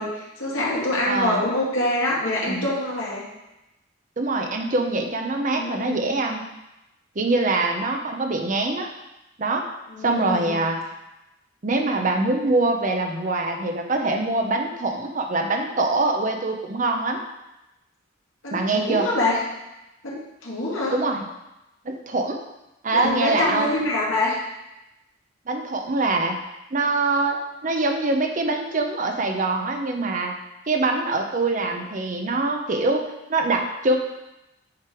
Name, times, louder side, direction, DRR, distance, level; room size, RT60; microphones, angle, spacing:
voice 1, 0.0-3.2 5.5-6.1 9.9-10.6 18.4-19.4 20.0-20.9 22.9-24.4, left 1 dB, 75° left, -5 dB, 2.1 m, -25 dB
voice 2, 1.1-1.4 2.5-2.7 4.2-6.4 7.2-8.9 9.4-9.7 10.0-10.8 11.6-17.2 18.5-19.1 20.9-21.2 21.8-22.4 22.8-23.7 25.5-26.4 26.7-30.3 30.7-34.0, right 2 dB, 40° right, 4 dB, 0.6 m, -24 dB
9.5 x 3.3 x 4.4 m, 0.95 s
head